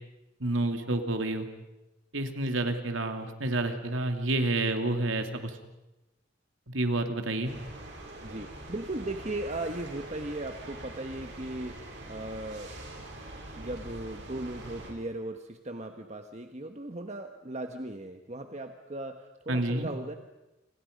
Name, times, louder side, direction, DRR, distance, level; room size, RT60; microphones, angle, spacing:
voice 1, 0.4-1.5 2.1-5.6 6.7-7.5 19.5-19.9, right 2 dB, 80° right, 6 dB, 2.8 m, -29 dB
sound 1, 7.4-14.9, right 1 dB, 60° right, 6.4 m, -44 dB
voice 2, 8.2-12.7 13.5-20.2, right 2 dB, 35° right, 5 dB, 1.3 m, -37 dB
30.0 x 26.5 x 5.3 m, 0.99 s
head